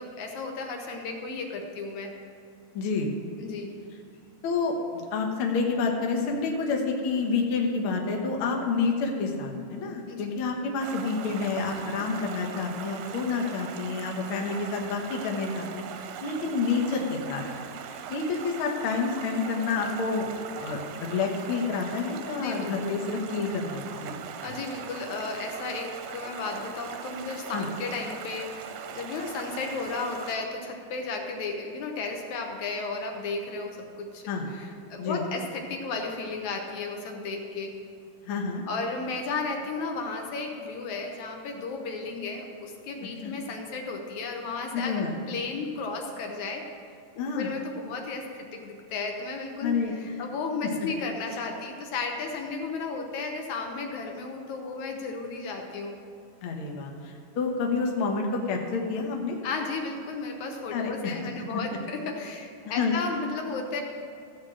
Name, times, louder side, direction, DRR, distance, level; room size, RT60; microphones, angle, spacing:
voice 1, 0.0-2.1 3.4-3.7 10.1-10.3 22.4-22.9 24.4-37.7 38.7-46.7 47.2-56.0 59.4-63.8, left 4 dB, 70° left, 2 dB, 1.9 m, -34 dB
voice 2, 2.7-3.1 4.4-15.8 16.2-17.4 18.1-24.1 27.5-27.7 34.3-34.5 35.0-35.2 38.2-38.6 43.2-43.3 44.7-45.1 47.2-47.5 49.6-49.9 56.4-59.4 60.7-61.1 62.6-62.9, left 4 dB, 85° left, 1 dB, 1.1 m, -29 dB
Stream, 10.8-30.4, right 7 dB, 75° right, 2.0 m, -40 dB
15.0 x 5.1 x 7.5 m, 2.4 s
omnidirectional pair, 4.4 m